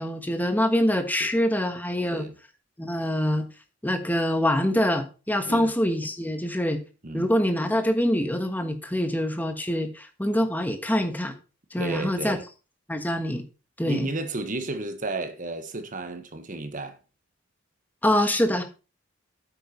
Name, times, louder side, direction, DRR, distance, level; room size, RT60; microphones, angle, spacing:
voice 1, 0.0-2.3 2.8-3.5 3.8-6.8 7.1-11.3 11.7-12.4 12.9-13.4 13.8-14.1 18.0-18.6, left 1 dB, 10° left, 1.3 m, -25 dB
voice 2, 11.8-12.4 13.8-17.0, right 2 dB, 40° right, 1.4 m, -33 dB
9.1 x 8.2 x 4.4 m
head